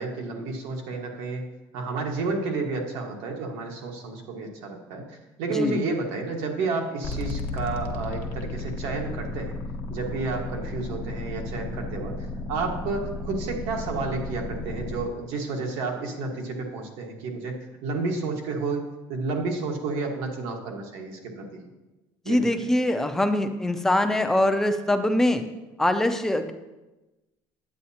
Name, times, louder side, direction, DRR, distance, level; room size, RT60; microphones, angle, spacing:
voice 1, 0.0-1.4 1.7-5.0 5.4-9.6 9.9-21.7 22.2-22.5, right 3 dB, 80° right, 2 dB, 1.5 m, -31 dB
sound 1, 7.0-15.0, left 2 dB, 80° left, 1.0 m, -34 dB
voice 2, 22.3-25.4 25.8-26.5, left 1 dB, 5° left, 8 dB, 0.4 m, -23 dB
9.1 x 8.3 x 2.8 m, 1.1 s
cardioid pair, 180°, 9 cm